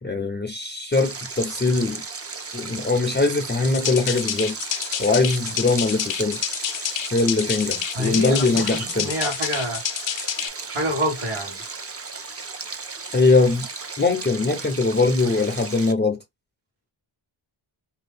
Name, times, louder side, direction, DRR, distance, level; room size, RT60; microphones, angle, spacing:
voice 1, 0.0-2.0 2.5-4.5 5.0-6.4 7.1-9.1 13.1-13.7 14.0-16.2, left 3 dB, 20° left, 0.5 m, -21 dB
Stream, 0.9-15.9, right 4 dB, 30° right, 0.6 m, -35 dB
sound 1, 3.6-10.5, left 10 dB, 65° left, 0.6 m, -29 dB
voice 2, 7.9-9.8 10.7-11.6, equal, 90° right, 1.4 m, -27 dB
2.7 x 2.3 x 3.3 m
wide cardioid pair, 80°, 49 cm